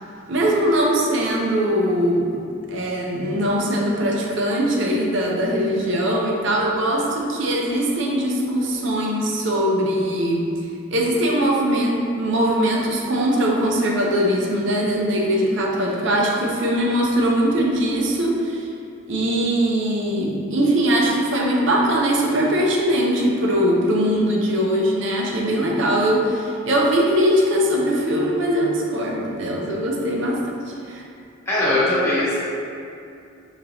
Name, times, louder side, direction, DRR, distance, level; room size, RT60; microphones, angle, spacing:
voice 1, 0.3-2.3 2.7-10.5 10.9-18.7 19.1-31.0, equal, 60° right, -2 dB, 0.6 m, -21 dB
voice 2, 31.5-32.3, left 1 dB, 15° left, -11 dB, 0.9 m, -20 dB
5.3 x 2.9 x 2.7 m, 2.5 s
head